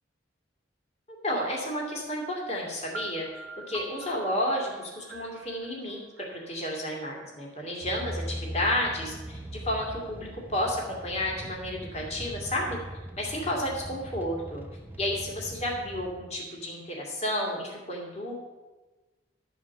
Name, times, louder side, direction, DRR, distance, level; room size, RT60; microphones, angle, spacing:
voice 1, 1.2-6.0 6.3-12.8 13.2-14.6 15.0-18.3, left 1 dB, 35° left, -2 dB, 2.3 m, -31 dB
sound 1, 2.9-6.8, right 4 dB, 80° right, 0.7 m, -44 dB
sound 2, 7.8-16.1, equal, 10° right, 0.8 m, -40 dB
12.5 x 5.0 x 7.0 m, 1.2 s
head